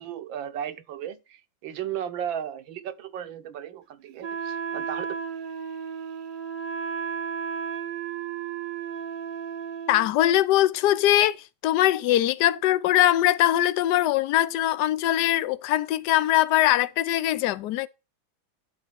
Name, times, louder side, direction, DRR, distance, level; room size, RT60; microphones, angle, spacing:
voice 1, 0.0-5.1, right 9 dB, 70° right, 1.5 m, -35 dB
Wind instrument woodwind instrument, 4.2-10.1, right 7 dB, 50° right, 1.2 m, -33 dB
voice 2, 9.9-11.4 11.6-17.9, left 13 dB, 75° left, 1.0 m, -21 dB
11.5 x 4.2 x 5.0 m
omnidirectional pair, 2.3 m